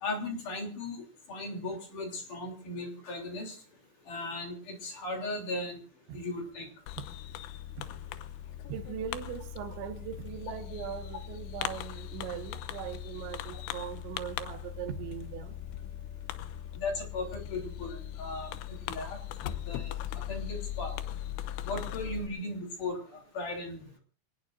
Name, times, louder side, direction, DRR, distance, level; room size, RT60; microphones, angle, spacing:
voice 1, 0.0-1.0 1.3-3.6 4.1-5.8 6.1-6.7 16.8-18.5 18.9-19.2 19.7-19.9 20.3-20.9 21.6-24.0, left 2 dB, 50° left, 4.6 m, -37 dB
Fireworks, 6.9-22.3, left 11 dB, 85° left, 3.1 m, -39 dB
voice 2, 8.7-15.6, right 9 dB, 85° right, 3.6 m, -40 dB
25.5 x 19.0 x 2.6 m
omnidirectional pair, 5.0 m